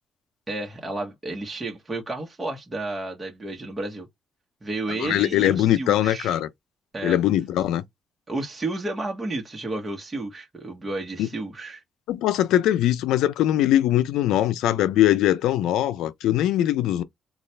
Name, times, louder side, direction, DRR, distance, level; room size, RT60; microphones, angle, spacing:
voice 1, 0.5-4.1 4.6-6.4 6.9-7.2 8.3-11.8, right 2 dB, 25° right, 1.2 m, -32 dB
voice 2, 5.0-6.5 7.0-7.8 11.2-11.3 12.1-17.0, left 13 dB, 90° left, 0.4 m, -21 dB
3.9 x 2.4 x 3.2 m
cardioid pair, 90°, 0 cm